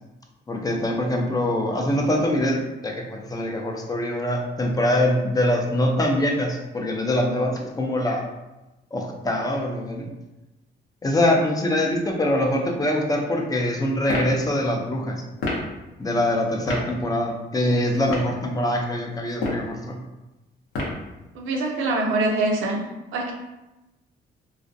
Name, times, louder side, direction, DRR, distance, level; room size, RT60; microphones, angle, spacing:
voice 1, 0.5-8.2 8.9-10.1 11.0-15.2 16.0-20.0, left 1 dB, 20° left, 1 dB, 0.4 m, -24 dB
sound 1, 14.0-14.3 15.4-15.7 16.7-16.9 17.9-18.3 19.3-19.7 20.7-21.1, left 2 dB, 90° left, 0.7 m, -27 dB
voice 2, 21.3-22.8 23.1-23.3, right 2 dB, 85° right, 1 dB, 0.5 m, -24 dB
2.4 x 2.1 x 2.5 m, 1.0 s
cardioid pair, 90°, 20 cm